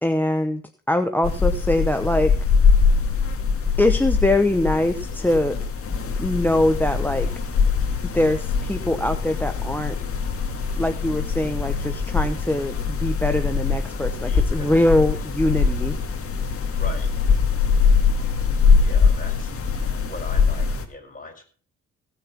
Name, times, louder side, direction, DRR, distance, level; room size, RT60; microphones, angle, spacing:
voice 1, 0.0-2.3 3.8-5.6 6.2-7.3 8.1-10.0 10.8-16.0, left 1 dB, 5° left, 9 dB, 0.9 m, -22 dB
sound 1, 1.2-20.8, left 5 dB, 50° left, 2.2 m, -22 dB
voice 2, 14.3-14.9 15.4-15.6 16.8-17.1 18.8-19.5 20.0-21.4, left 3 dB, 25° left, 2 dB, 4.8 m, -39 dB
17.0 x 7.0 x 6.0 m, 0.41 s
cardioid pair, 90°, 30 cm